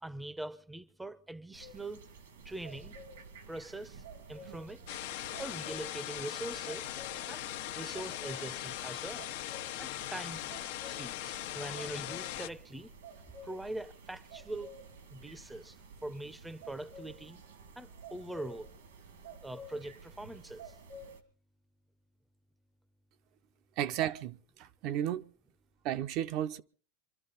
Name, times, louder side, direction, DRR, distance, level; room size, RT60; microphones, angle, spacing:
voice 1, 0.0-2.1 2.4-3.0 3.5-4.0 4.3-4.8 5.2-6.9 7.3-7.4 7.7-9.3 9.8-10.5 10.9-12.9 13.4-14.8 15.1-17.4 17.8-18.7 19.4-20.8, right 1 dB, 5° right, 0.8 m, -43 dB
sound 1, 1.5-21.2, right 2 dB, 85° right, 2.4 m, -51 dB
sound 2, 4.9-12.5, left 14 dB, 70° left, 1.1 m, -40 dB
voice 2, 23.8-25.3 25.8-26.6, right 11 dB, 50° right, 0.8 m, -34 dB
26.0 x 12.5 x 4.1 m
supercardioid pair, 120°, 0 cm